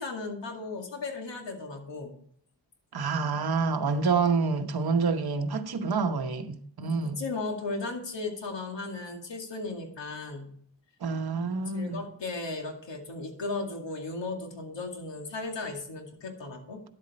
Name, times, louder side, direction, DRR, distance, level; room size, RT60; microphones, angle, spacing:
voice 1, 0.0-2.2 6.8-10.6 11.4-16.8, left 3 dB, 75° left, 2.3 m, -36 dB
voice 2, 2.9-7.2 11.0-12.0, right 4 dB, 55° right, 1.0 m, -27 dB
11.0 x 8.2 x 4.3 m
wide cardioid pair, 95°, 43 cm